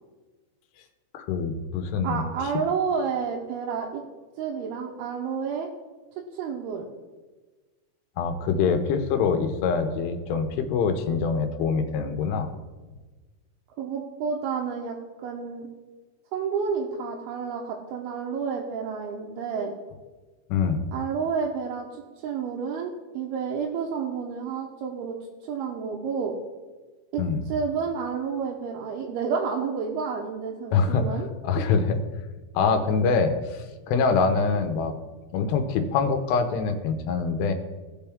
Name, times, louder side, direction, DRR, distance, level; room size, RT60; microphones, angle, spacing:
voice 1, 1.1-2.2 8.2-12.5 20.5-20.8 27.2-27.4 30.7-32.0 32.5-34.9 35.3-37.5, left 5 dB, 85° left, 7 dB, 2.9 m, -24 dB
voice 2, 2.0-4.0 4.4-5.7 6.3-6.9 13.8-15.7 16.3-19.7 20.9-25.2 25.4-26.4 27.1-31.3, right 6 dB, 80° right, -1 dB, 2.7 m, -30 dB
16.5 x 5.7 x 3.5 m, 1.3 s
omnidirectional pair, 4.7 m